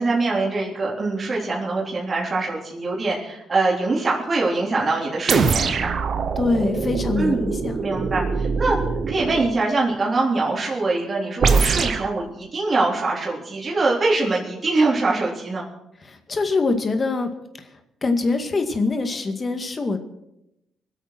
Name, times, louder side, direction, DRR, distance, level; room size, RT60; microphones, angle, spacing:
voice 1, 0.0-5.9 7.2-7.4 7.8-8.8 9.1-15.6, right 3 dB, 35° right, -4 dB, 3.8 m, -23 dB
sound 1, 5.3-9.6 11.4-12.1, right 5 dB, 55° right, 1.2 m, -23 dB
voice 2, 6.4-7.9 16.0-17.3 17.6-17.7 18.0-20.0, left 3 dB, 35° left, 6 dB, 2.1 m, -24 dB
24.0 x 8.2 x 6.1 m, 0.85 s
cardioid pair, 90°, 0 cm